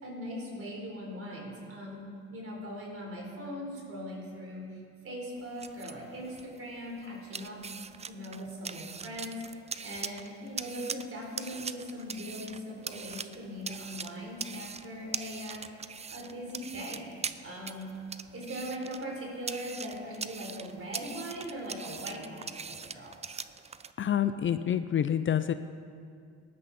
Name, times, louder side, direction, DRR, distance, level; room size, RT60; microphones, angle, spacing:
voice 1, 0.0-4.8 5.0-7.6 8.1-9.4 9.8-17.0 17.4-18.0 18.3-23.1, equal, 45° right, -1 dB, 4.0 m, -40 dB
sound 1, 5.4-23.9, right 5 dB, 20° right, 0.5 m, -42 dB
voice 2, 24.0-25.5, left 9 dB, 40° left, 11 dB, 0.5 m, -27 dB
18.0 x 12.0 x 4.3 m, 2.3 s
cardioid pair, 90°, 30 cm